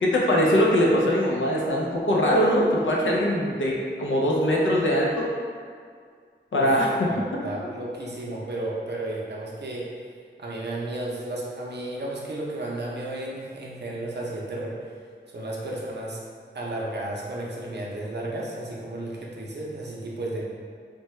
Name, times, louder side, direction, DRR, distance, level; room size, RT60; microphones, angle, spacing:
voice 1, 0.0-5.3 6.5-6.9, equal, 80° left, -3 dB, 0.6 m, -22 dB
voice 2, 7.1-9.9 10.4-14.8 15.3-16.2 16.5-20.4, right 1 dB, 60° right, -3 dB, 0.6 m, -33 dB
3.2 x 2.2 x 3.0 m, 2.1 s
wide cardioid pair, 80°, 20 cm